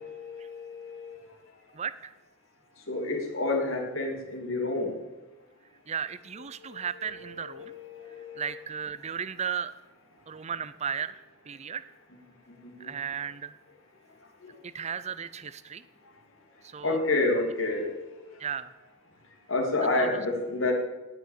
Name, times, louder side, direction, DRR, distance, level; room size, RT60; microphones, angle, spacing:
voice 1, 0.0-1.3 2.9-4.9 6.7-6.8 7.1-8.5 12.6-12.9 14.4-14.5 16.8-18.4 19.5-20.7, left 2 dB, 75° left, 2 dB, 2.8 m, -30 dB
voice 2, 1.7-2.1 5.9-7.8 8.4-9.7 10.3-11.9 12.8-13.5 14.6-15.8 16.6-17.0 18.4-18.7 20.0-20.1, right 7 dB, 35° right, 15 dB, 0.6 m, -35 dB
18.0 x 6.0 x 8.6 m, 1.1 s
head